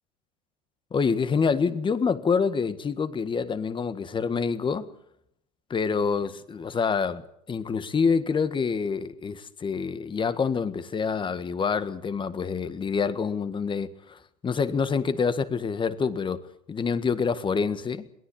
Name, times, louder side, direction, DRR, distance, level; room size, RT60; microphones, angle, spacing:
voice 1, 0.9-4.9 5.7-7.2 7.5-18.1, left 5 dB, 25° left, 1.6 m, -27 dB
22.5 x 17.5 x 8.7 m
supercardioid pair, 105°, 21 cm